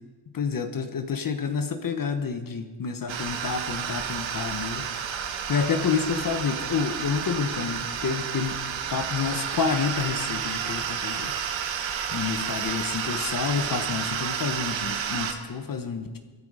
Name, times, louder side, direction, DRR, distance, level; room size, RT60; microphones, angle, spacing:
voice 1, 0.3-4.8 5.2-8.6 8.9-11.3 12.1-16.2, left 6 dB, 45° left, 8 dB, 1.1 m, -29 dB
sound 1, 3.1-15.3, right 7 dB, 75° right, 1.5 m, -31 dB
22.5 x 9.5 x 5.0 m, 1.4 s
cardioid pair, 105°, 45 cm